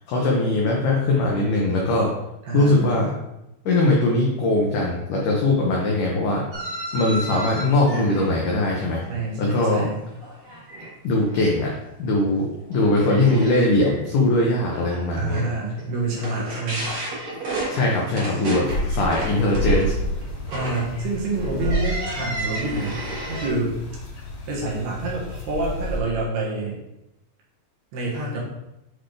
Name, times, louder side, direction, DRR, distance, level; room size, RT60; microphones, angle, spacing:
voice 1, 0.1-2.1 2.5-3.1 3.7-6.4 6.9-9.0 9.4-9.9 11.0-11.7 12.0-15.4 17.7-19.9, left 2 dB, 85° left, -2 dB, 1.8 m, -21 dB
voice 2, 2.4-3.0 9.1-10.0 15.1-16.9 18.2-18.4 20.5-23.0 23.3-23.7 24.5-26.8 27.9-28.4, right 3 dB, 70° right, -4 dB, 3.2 m, -27 dB
sound 1, 6.5-9.9 10.1-10.9 11.3-11.7 12.1-12.2 12.7-23.5, right 2 dB, 90° right, 0.9 m, -33 dB
sound 2, 18.6-26.0, left 1 dB, 60° left, 3.0 m, -29 dB
7.9 x 4.0 x 3.3 m, 0.90 s
omnidirectional pair, 4.9 m